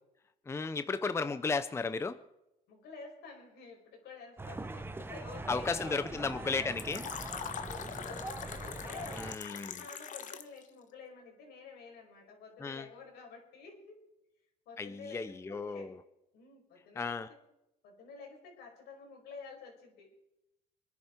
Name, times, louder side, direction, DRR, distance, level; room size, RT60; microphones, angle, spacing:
voice 1, 0.5-2.2 5.5-7.1 9.2-9.8 12.6-12.9 14.8-15.9 17.0-17.3, left 4 dB, 15° left, 13 dB, 0.6 m, -34 dB
voice 2, 2.7-6.0 7.6-9.3 9.7-14.0 14.6-16.0 16.3-17.4 17.8-20.2, left 4 dB, 75° left, 1 dB, 5.0 m, -50 dB
sound 1, 4.4-9.4, right 2 dB, 15° right, 0.9 m, -42 dB
Fill (with liquid), 6.8-10.6, left 8 dB, 50° left, 1.1 m, -42 dB
25.5 x 10.0 x 4.4 m, 0.89 s
cardioid pair, 110°, 17 cm